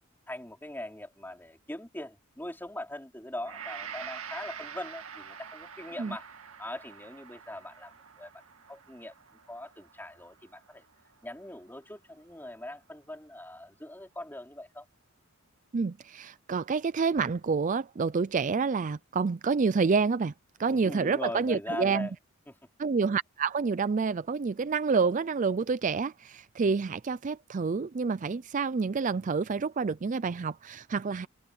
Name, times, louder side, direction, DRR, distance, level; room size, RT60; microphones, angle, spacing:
voice 1, 0.3-6.3 6.6-8.3 8.7-9.1 9.5-10.8 11.2-14.8 20.7-22.1 22.5-22.6, left 1 dB, 10° left, 4.7 m, -41 dB
Gong, 3.4-11.8 12.2-12.4, right 7 dB, 90° right, 2.1 m, -46 dB
voice 2, 15.7-20.3 20.6-22.1 22.8-31.3, right 5 dB, 35° right, 0.4 m, -28 dB
head